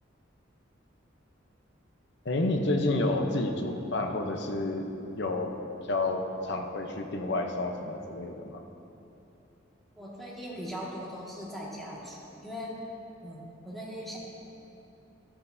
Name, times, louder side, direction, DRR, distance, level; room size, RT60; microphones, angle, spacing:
voice 1, 2.2-5.5 5.9-8.6, left 2 dB, 65° left, 4 dB, 0.8 m, -30 dB
voice 2, 9.9-12.7 13.2-14.2, equal, ahead, -7 dB, 1.9 m, -40 dB
13.0 x 9.9 x 2.7 m, 2.9 s
head